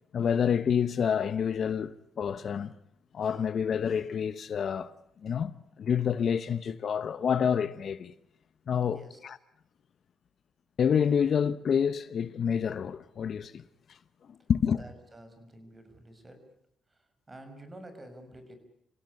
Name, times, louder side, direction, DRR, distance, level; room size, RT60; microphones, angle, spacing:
voice 1, 0.1-2.7 3.1-4.9 5.2-5.5 5.8-8.1 8.7-9.4 10.8-13.6 13.9-14.0 14.3-14.8, left 7 dB, 55° left, 0.9 m, -28 dB
voice 2, 14.8-16.4 16.9-18.5, right 1 dB, 25° right, 6.4 m, -49 dB
27.5 x 16.5 x 9.7 m
cardioid pair, 90°, 0 cm